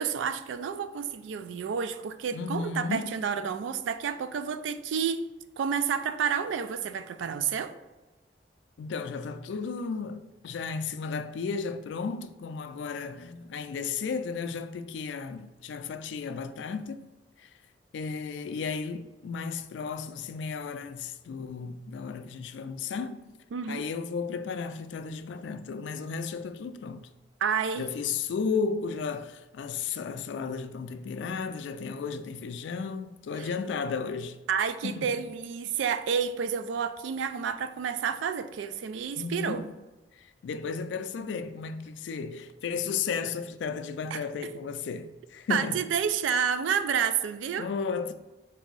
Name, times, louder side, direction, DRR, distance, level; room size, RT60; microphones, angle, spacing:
voice 1, 0.0-5.3 5.6-7.8 23.5-23.9 27.4-27.9 33.4-33.5 34.5-39.7 44.1-44.2 45.5-47.7, right 7 dB, 85° right, 0.3 m, -30 dB
voice 2, 2.3-3.1 8.8-17.0 17.4-17.5 17.9-23.2 23.7-27.1 27.8-34.4 34.8-35.3 39.2-39.7 40.2-45.9 47.6-48.1, left 5 dB, 75° left, 0.3 m, -34 dB
4.0 x 2.6 x 3.9 m
head